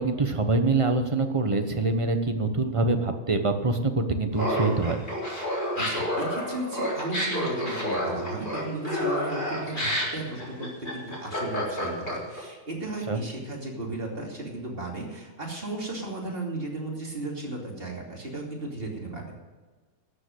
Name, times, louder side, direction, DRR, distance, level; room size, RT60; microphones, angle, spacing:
voice 1, 0.0-5.0 13.1-13.2, right 3 dB, 25° right, 7 dB, 1.0 m, -25 dB
Laughter, 4.3-12.4, equal, 35° left, 4.1 m, -29 dB
voice 2, 5.7-19.4, right 2 dB, 40° right, -1 dB, 2.9 m, -35 dB
13.0 x 7.7 x 7.8 m, 1.3 s
omnidirectional pair, 1.5 m